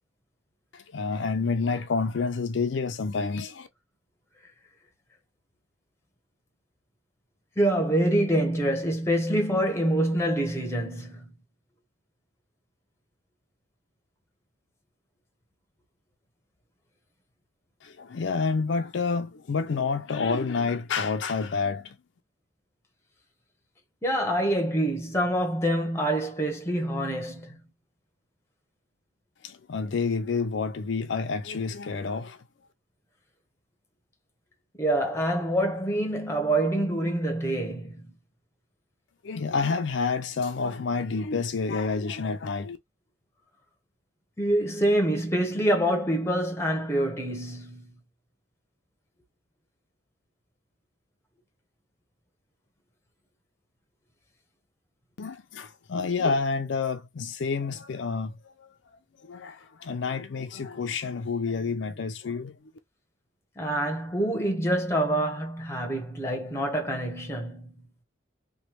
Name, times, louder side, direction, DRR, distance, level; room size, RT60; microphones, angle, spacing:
voice 1, 0.7-3.7 17.8-22.0 29.4-32.4 39.2-42.8 55.2-58.7 59.2-62.6, left 4 dB, 65° left, 0.4 m, -29 dB
voice 2, 7.6-11.2 24.0-27.5 34.8-38.1 44.4-47.9 63.6-67.7, right 1 dB, 15° left, 0.7 m, -26 dB
3.1 x 2.2 x 2.9 m
head